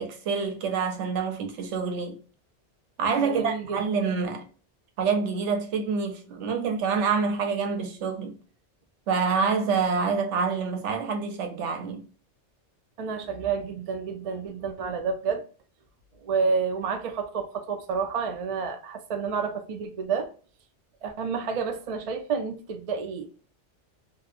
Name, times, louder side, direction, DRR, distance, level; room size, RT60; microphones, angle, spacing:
voice 1, 0.0-2.2 3.0-4.5 5.0-8.4 9.1-12.0, right 5 dB, 85° right, 0.9 m, -27 dB
voice 2, 3.2-3.8 13.0-15.4 16.2-20.3 21.0-23.3, right 5 dB, 70° right, 0.3 m, -29 dB
2.8 x 2.1 x 2.4 m
omnidirectional pair, 1.2 m